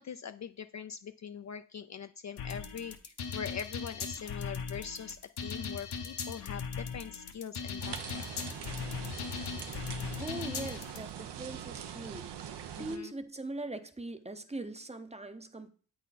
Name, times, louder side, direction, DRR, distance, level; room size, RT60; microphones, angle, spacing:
voice 1, 0.0-8.5 12.8-13.1, left 7 dB, 45° left, 0.4 m, -43 dB
sound 1, 2.4-11.0, left 6 dB, 70° left, 1.0 m, -39 dB
sound 2, 7.8-13.0, right 9 dB, 75° right, 0.8 m, -43 dB
voice 2, 10.2-15.7, right 2 dB, 15° right, 0.7 m, -41 dB
8.3 x 3.9 x 4.1 m
cardioid pair, 70°, 41 cm